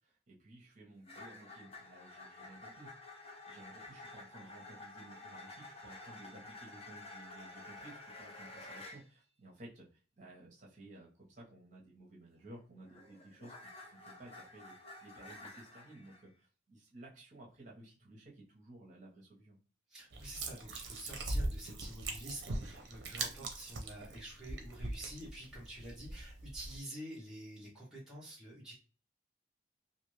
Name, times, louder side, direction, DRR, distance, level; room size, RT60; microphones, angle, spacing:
voice 1, 0.0-2.9 3.5-14.7 15.0-19.6 23.2-23.5, right 1 dB, 40° right, -4 dB, 1.0 m, -55 dB
sound 1, 1.1-9.0 12.4-16.2, left 2 dB, 30° left, 0.7 m, -51 dB
voice 2, 19.9-28.7, right 1 dB, 5° right, -7 dB, 0.9 m, -48 dB
sound 2, 20.1-26.8, right 2 dB, 60° right, 0.6 m, -41 dB
2.6 x 2.5 x 3.1 m, 0.38 s
head